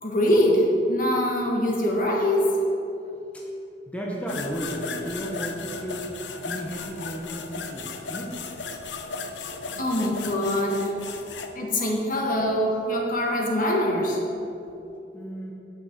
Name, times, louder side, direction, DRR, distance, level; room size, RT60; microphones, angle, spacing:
voice 1, 0.0-2.6 9.8-10.9 11.6-14.2, left 1 dB, 50° left, -1 dB, 1.4 m, -23 dB
voice 2, 3.9-6.1 6.4-8.4 14.6-14.7 15.1-15.5, equal, 10° left, -3 dB, 0.9 m, -34 dB
sound 1, 4.3-11.5, left 4 dB, 90° left, 0.7 m, -36 dB
6.5 x 6.4 x 6.6 m, 2.9 s
head